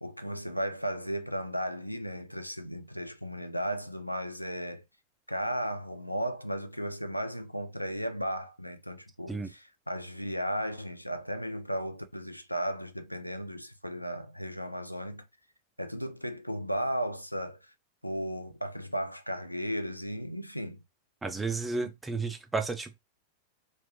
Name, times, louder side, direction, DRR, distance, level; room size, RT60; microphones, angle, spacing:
voice 1, 0.0-4.8 5.3-15.3 15.8-17.7 18.0-20.8 21.8-21.9, equal, 90° left, 0.3 m, -35 dB
voice 2, 21.2-22.9, right 3 dB, 10° right, 0.5 m, -32 dB
3.0 x 2.1 x 2.9 m
figure-of-eight pair, 90°, 0 cm